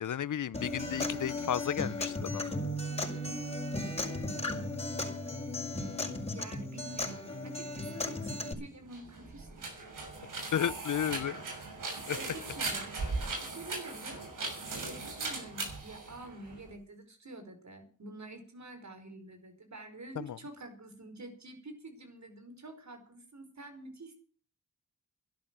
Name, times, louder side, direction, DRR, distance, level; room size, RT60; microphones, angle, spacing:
voice 1, 0.0-2.6 10.5-11.3 12.1-12.2 20.1-20.4, left 9 dB, 75° left, 0.7 m, -33 dB
Acoustic guitar, 0.5-8.5, left 2 dB, 20° left, 5.8 m, -36 dB
voice 2, 6.3-9.7 12.2-12.9 13.4-24.1, right 2 dB, 60° right, 5.2 m, -48 dB
sound 1, 8.8-16.7, right 3 dB, 85° right, 6.3 m, -38 dB
13.0 x 12.0 x 7.8 m
cardioid pair, 60°, 31 cm